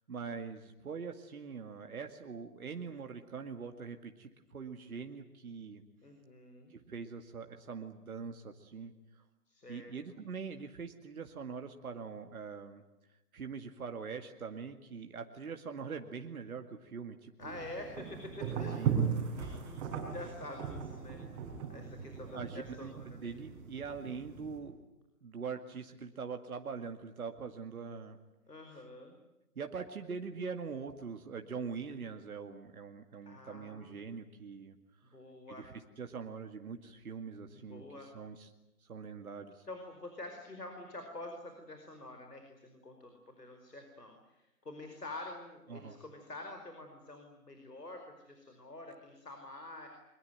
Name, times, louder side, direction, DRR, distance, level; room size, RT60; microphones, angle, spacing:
voice 1, 0.1-5.8 6.7-9.2 9.7-12.8 13.3-17.6 18.8-19.0 22.2-24.8 25.2-28.2 29.6-34.8 35.5-38.5 38.8-39.7 45.7-46.0, right 5 dB, 65° right, 5 dB, 2.3 m, -43 dB
voice 2, 6.0-6.7 9.5-9.9 17.4-19.0 19.3-21.2 21.7-23.3 28.5-29.2 33.3-34.1 35.1-35.6 37.5-38.1 39.7-49.9, left 2 dB, 90° left, 4 dB, 5.1 m, -47 dB
sound 1, 17.4-24.6, right 7 dB, 25° right, 6.8 m, -38 dB
24.0 x 22.0 x 9.2 m, 0.96 s
figure-of-eight pair, 140°, 46 cm